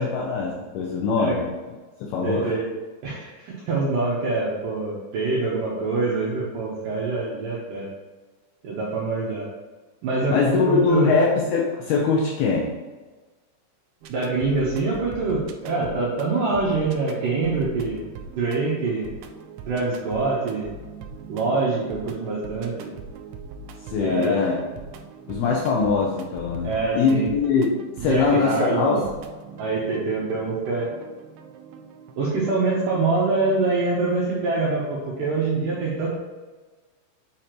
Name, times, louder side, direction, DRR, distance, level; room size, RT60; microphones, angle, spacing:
voice 1, 0.0-1.5 2.0-2.5 10.3-12.7 23.9-24.6 25.3-26.7 27.0-29.0, left 4 dB, 80° left, -2 dB, 2.3 m, -22 dB
voice 2, 2.2-2.6 3.0-7.9 8.6-9.5 10.0-11.1 14.1-18.0 18.4-19.1 19.7-20.7 21.3-22.9 24.0-24.4 26.6-27.3 28.0-29.1 29.6-30.9 32.2-36.2, right 3 dB, 70° right, -5 dB, 2.1 m, -25 dB
sound 1, 14.0-33.8, right 5 dB, 85° right, 2.4 m, -41 dB
8.5 x 5.0 x 3.0 m, 1.3 s
omnidirectional pair, 5.2 m